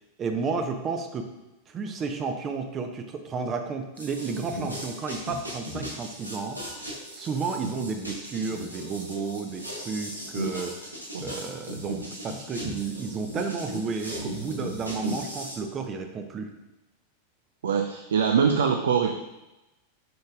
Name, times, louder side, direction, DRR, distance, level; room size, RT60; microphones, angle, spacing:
voice 1, 0.2-1.3 1.7-6.6 7.2-10.7 11.2-16.5, right 4 dB, 25° right, 5 dB, 0.6 m, -32 dB
sound 1, 4.0-15.6, equal, 90° right, 1.3 m, -37 dB
voice 2, 17.6-19.2, right 6 dB, 65° right, 5 dB, 0.4 m, -23 dB
7.7 x 5.3 x 2.4 m, 0.99 s
figure-of-eight pair, 90°, 0 cm